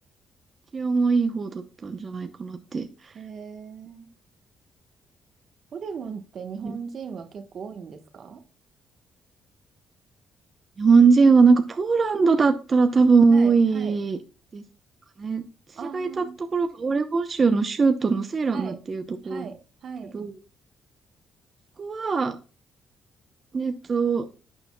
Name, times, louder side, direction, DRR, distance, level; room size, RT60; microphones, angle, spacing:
voice 1, 0.7-2.9 6.6-6.8 10.8-14.2 14.5-14.6 15.2-15.4 15.9-16.2 16.5-19.4 20.1-20.3 21.8-22.4 23.5-24.3, right 4 dB, 40° right, 0.8 m, -21 dB
voice 2, 3.1-4.1 5.7-8.4 13.3-14.0 15.8-16.4 18.5-18.8 19.2-20.1, right 6 dB, 55° right, 1.2 m, -38 dB
11.0 x 6.9 x 2.2 m
cardioid pair, 90°, 0 cm